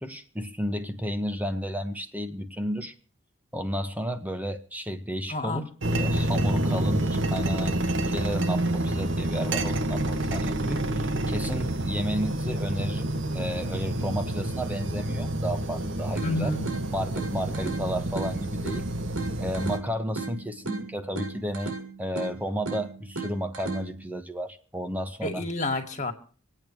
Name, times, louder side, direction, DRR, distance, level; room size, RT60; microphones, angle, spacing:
voice 1, 0.0-2.9 3.5-16.5 16.9-18.9 19.4-25.4, equal, 5° right, 1.2 m, -32 dB
voice 2, 5.3-5.7 16.2-16.7 25.2-26.1, left 2 dB, 35° left, 2.1 m, -29 dB
sound 1, 5.8-19.8, right 1 dB, 55° right, 1.3 m, -28 dB
sound 2, 16.2-24.2, right 4 dB, 85° right, 4.1 m, -37 dB
25.5 x 8.9 x 4.6 m
head